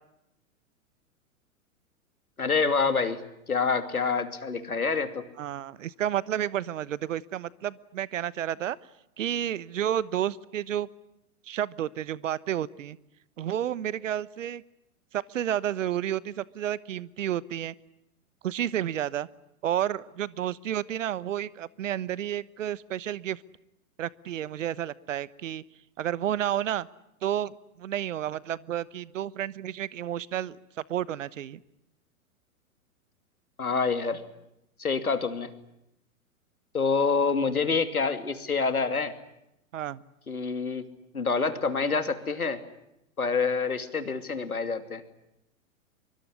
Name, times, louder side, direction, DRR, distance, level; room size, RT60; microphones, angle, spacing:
voice 1, 2.4-3.2 3.5-5.3 33.6-34.2 34.8-35.5 36.7-39.1 40.3-40.8 41.1-42.6 43.2-45.0, left 4 dB, 80° left, 10 dB, 2.8 m, -27 dB
voice 2, 5.4-8.8 9.2-10.9 11.4-13.0 13.4-14.6 15.1-17.7 18.4-19.3 19.6-23.4 24.0-25.6 26.0-26.9 27.2-30.6 30.9-31.6 39.7-40.0, right 11 dB, 60° right, 20 dB, 1.2 m, -31 dB
24.5 x 24.0 x 9.7 m, 0.84 s
figure-of-eight pair, 105°, 43 cm